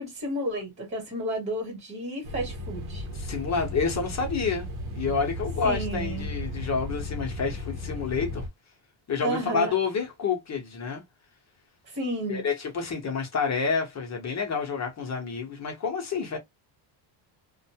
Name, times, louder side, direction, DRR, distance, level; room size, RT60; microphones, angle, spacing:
voice 1, 0.0-3.1 5.6-6.3 9.2-9.7 11.9-12.4, right 1 dB, 25° right, 1.3 m, -31 dB
sound 1, 2.2-8.5, left 1 dB, 60° right, 0.8 m, -35 dB
voice 2, 3.1-4.7 4.9-8.5 9.1-11.0 12.3-16.4, left 5 dB, 35° left, 0.9 m, -29 dB
2.5 x 2.2 x 2.7 m
cardioid pair, 150°, 50 cm